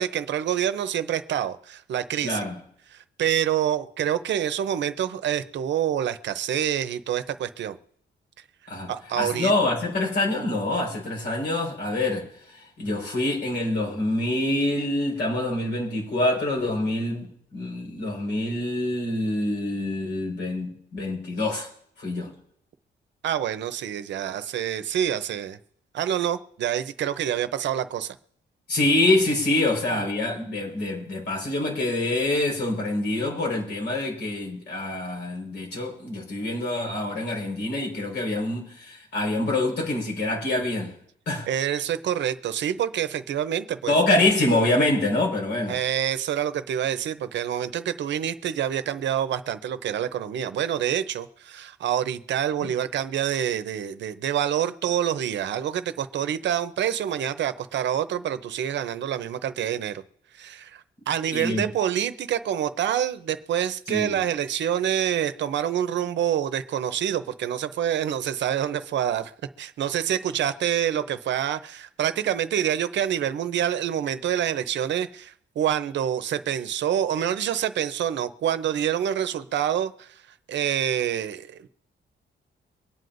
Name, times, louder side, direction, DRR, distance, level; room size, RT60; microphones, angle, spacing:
voice 1, 0.0-2.4 2.9-7.8 8.9-9.5 23.2-25.6 25.9-28.2 41.5-43.9 45.7-60.0 60.3-69.3 69.6-80.2 80.5-81.7, right 10 dB, 75° right, 0.7 m, -27 dB
voice 2, 2.2-2.6 8.7-21.7 22.0-22.3 28.7-40.9 41.3-41.5 43.9-45.8 52.6-52.7 61.3-61.7 63.9-64.2, left 2 dB, 65° left, 4.7 m, -26 dB
24.0 x 9.4 x 2.6 m
wide cardioid pair, 165°, 19 cm